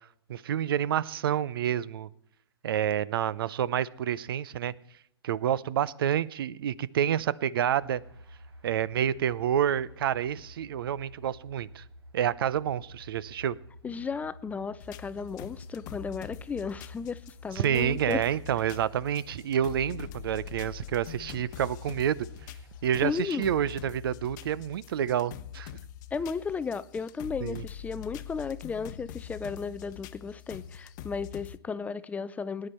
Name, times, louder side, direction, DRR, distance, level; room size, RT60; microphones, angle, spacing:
voice 1, 0.3-2.1 2.6-4.7 5.2-8.0 8.6-11.8 12.1-13.6 17.6-22.3 22.8-25.7 27.4-27.6, right 10 dB, 60° right, 21 dB, 0.6 m, -28 dB
sound 1, 7.8-23.2, left 1 dB, 80° right, 4.4 m, -50 dB
voice 2, 13.8-18.3 23.0-23.5 26.1-32.7, left 5 dB, 10° left, 16 dB, 0.4 m, -34 dB
sound 2, 14.8-31.6, left 11 dB, 45° left, 0.9 m, -44 dB
19.0 x 10.0 x 4.4 m, 0.69 s
hypercardioid pair, 115°, 13 cm